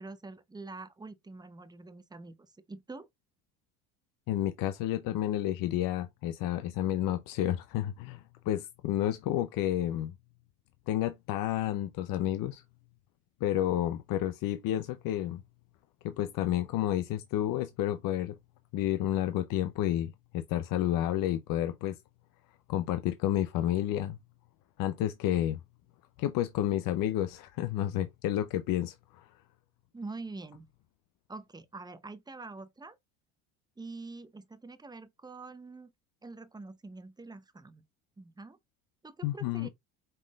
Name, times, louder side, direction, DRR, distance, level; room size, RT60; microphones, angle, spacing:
voice 1, 0.0-3.1 29.9-30.7 31.3-33.0 33.8-35.9 36.2-37.8 38.2-38.6 39.0-39.7, right 3 dB, 10° right, 0.7 m, -45 dB
voice 2, 4.3-10.1 10.9-12.6 13.4-15.4 16.0-18.4 18.7-22.0 22.7-24.2 24.8-25.6 26.2-29.3 39.2-39.7, left 12 dB, 60° left, 0.6 m, -30 dB
5.4 x 3.6 x 2.3 m
supercardioid pair, 90°, 39 cm